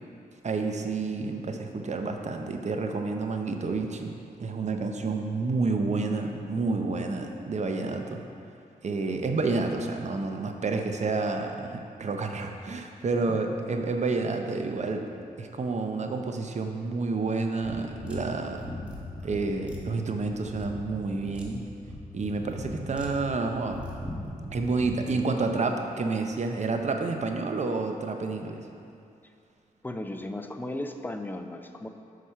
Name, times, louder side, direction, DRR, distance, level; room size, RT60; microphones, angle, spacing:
voice 1, 0.4-8.2 8.8-15.1 15.4-18.7 19.2-21.6 22.1-23.8 24.5-28.6, right 3 dB, 50° right, 4 dB, 0.7 m, -29 dB
sound 1, 17.6-25.0, left 1 dB, 10° right, 1.3 m, -39 dB
voice 2, 29.8-31.9, left 1 dB, 15° left, 6 dB, 0.5 m, -35 dB
5.8 x 4.8 x 5.6 m, 2.5 s
cardioid pair, 65°, 15 cm